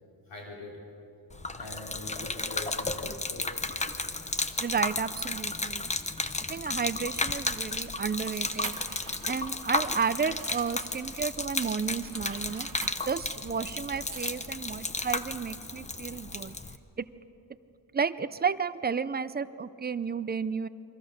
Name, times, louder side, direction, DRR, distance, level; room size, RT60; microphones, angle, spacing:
voice 1, 0.3-0.9 1.6-3.6, left 2 dB, 70° left, -2 dB, 3.9 m, -43 dB
Gurgling / Liquid, 1.3-16.8, left 3 dB, 15° left, 0.7 m, -33 dB
voice 2, 4.6-5.9 6.4-8.8 9.2-12.7 13.1-16.6 17.0-17.1 17.9-20.7, right 6 dB, 20° right, 14 dB, 0.5 m, -32 dB
sound 1, 6.9-11.2 11.6-14.7, right 7 dB, 45° right, 1.5 m, -47 dB
29.0 x 23.5 x 6.6 m, 2.8 s
wide cardioid pair, 160°, 45 cm